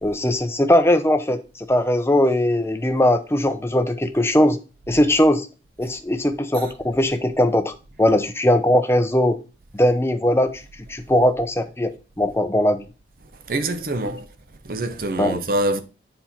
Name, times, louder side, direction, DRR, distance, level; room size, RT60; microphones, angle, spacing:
voice 1, 0.0-4.6 4.9-5.5 5.8-7.7 8.0-9.4 9.7-10.5 10.9-11.9 12.2-12.8 15.2-15.4, left 1 dB, 15° left, 0.7 m, -19 dB
voice 2, 13.5-14.3 14.7-15.8, right 1 dB, 55° right, 0.8 m, -24 dB
7.8 x 4.4 x 4.2 m
head